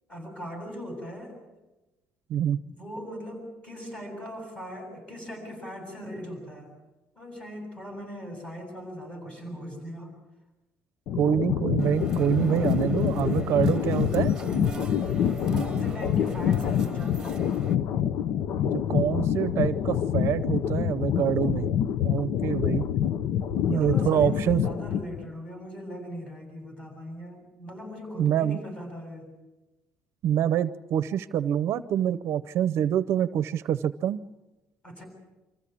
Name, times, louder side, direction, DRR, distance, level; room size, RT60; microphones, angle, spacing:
voice 1, 0.1-1.4 2.6-6.7 7.1-10.2 15.3-17.4 23.7-29.3 34.8-35.1, equal, 20° left, 2 dB, 7.8 m, -40 dB
sound 1, 11.1-25.3, left 9 dB, 65° left, 0.7 m, -26 dB
voice 2, 11.2-14.3 18.7-21.7 22.0-22.9 23.7-24.6 28.2-28.6 30.2-34.2, right 10 dB, 60° right, 12 dB, 0.7 m, -26 dB
sound 2, 11.8-17.7, right 3 dB, 10° right, 1.7 m, -40 dB
26.0 x 15.0 x 8.5 m, 1.1 s
cardioid pair, 145°, 5 cm